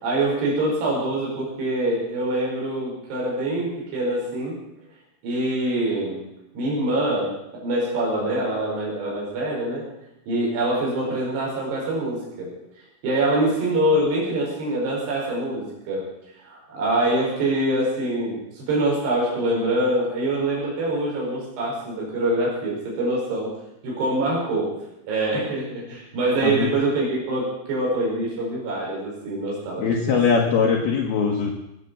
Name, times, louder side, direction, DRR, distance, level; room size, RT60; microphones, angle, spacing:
voice 1, 0.0-4.5 5.2-6.2 6.5-9.8 10.3-12.5 13.0-16.1 16.4-23.5 23.8-24.7 25.1-30.2, right 1 dB, 65° right, -4 dB, 7.1 m, -24 dB
voice 2, 29.8-31.5, left 5 dB, 65° left, -1 dB, 3.1 m, -21 dB
18.5 x 9.4 x 7.1 m, 0.86 s
omnidirectional pair, 5.3 m